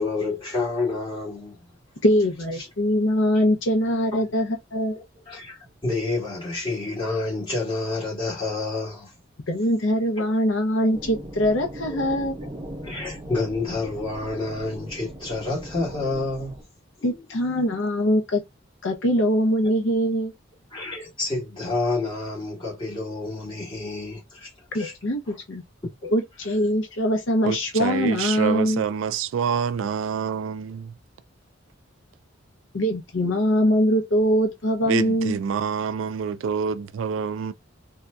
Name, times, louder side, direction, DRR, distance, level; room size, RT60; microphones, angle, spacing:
voice 1, 0.0-1.6 2.6-2.7 4.1-4.2 5.3-5.6 5.8-9.1 10.2-10.3 11.9-12.0 12.4-12.5 12.8-16.6 17.0-17.1 20.7-24.9 25.3-25.4 26.0-26.1, left 3 dB, 25° left, 2.2 m, -29 dB
voice 2, 2.0-5.0 9.5-12.3 17.0-18.4 18.8-20.3 24.7-25.6 26.1-28.8 32.7-35.4, equal, 65° left, 0.7 m, -22 dB
sound 1, 10.9-16.6, right 1 dB, 20° right, 0.7 m, -39 dB
voice 3, 27.4-30.9 34.8-37.5, right 6 dB, 80° right, 0.3 m, -27 dB
3.5 x 2.7 x 2.2 m
head